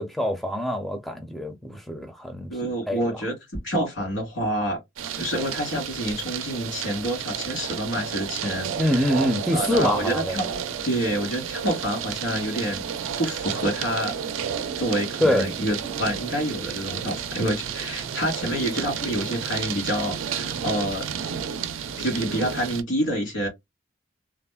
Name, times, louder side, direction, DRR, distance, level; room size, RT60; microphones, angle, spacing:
voice 1, 0.0-3.0 8.8-10.5 15.2-15.5, equal, ahead, 0.4 m, -25 dB
voice 2, 2.5-3.3 3.6-4.8 5.2-9.2 9.5-10.4 10.8-12.9 13.2-14.1 14.8-21.1 22.0-23.5, equal, 85° left, 1.9 m, -27 dB
sound 1, 5.0-22.8, right 8 dB, 85° right, 0.4 m, -32 dB
3.3 x 2.1 x 2.2 m
head